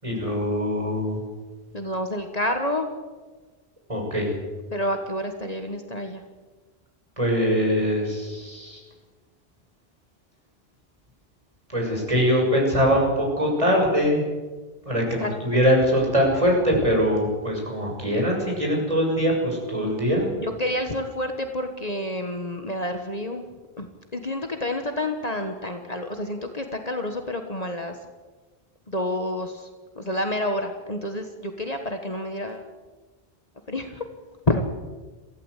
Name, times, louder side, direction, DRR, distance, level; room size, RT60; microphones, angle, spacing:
voice 1, 0.0-1.2 3.9-4.3 7.2-8.8 11.7-14.2 14.8-20.3, equal, 35° right, 0 dB, 6.7 m, -22 dB
voice 2, 1.7-2.9 4.7-6.2 15.2-15.3 20.4-23.4 23.8-27.9 28.9-29.7 30.0-32.7 33.7-34.0 34.5-34.6, left 1 dB, 40° left, 5 dB, 1.6 m, -29 dB
23.0 x 15.5 x 8.3 m, 1.3 s
omnidirectional pair, 1.0 m